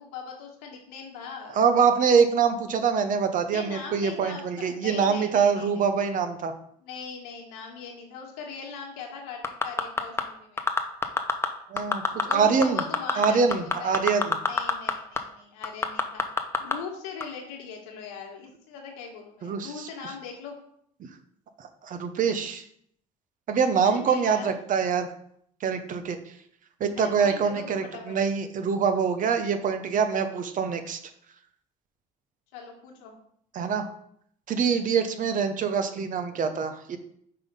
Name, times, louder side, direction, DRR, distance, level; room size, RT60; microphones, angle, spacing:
voice 1, 0.0-1.6 3.5-5.9 6.8-10.7 12.3-14.0 14.5-16.2 16.6-20.5 23.8-24.5 27.0-28.2 32.5-33.1, left 5 dB, 85° left, 1 dB, 1.5 m, -40 dB
voice 2, 1.5-6.5 11.7-12.8 13.2-14.4 19.4-19.9 21.6-22.6 23.5-25.1 25.6-26.3 26.8-31.0 33.5-33.9 34.5-37.0, right 6 dB, 50° right, 8 dB, 0.8 m, -24 dB
sound 1, 9.4-10.2 10.6-11.5 11.8-12.3 12.6-14.9 15.2-15.3 15.6-16.7 17.2-17.3, left 3 dB, 15° left, 0.7 m, -24 dB
5.6 x 3.7 x 5.4 m, 0.67 s
supercardioid pair, 75°, 17 cm